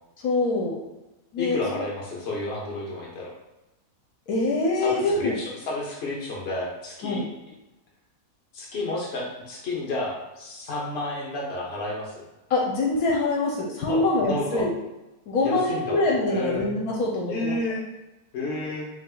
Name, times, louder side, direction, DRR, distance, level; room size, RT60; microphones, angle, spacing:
voice 1, 0.2-0.8 1.3-1.8 4.3-5.3 7.0-7.2 12.5-14.7 15.3-17.6, left 2 dB, 80° left, -2 dB, 1.2 m, -24 dB
voice 2, 1.4-3.3 4.7-7.2 8.5-12.3 13.9-14.7 15.4-16.0 16.3-16.6 17.3-17.8 18.3-18.9, left 2 dB, 45° left, -3 dB, 1.2 m, -31 dB
5.2 x 2.0 x 3.8 m, 1.0 s
omnidirectional pair, 1.6 m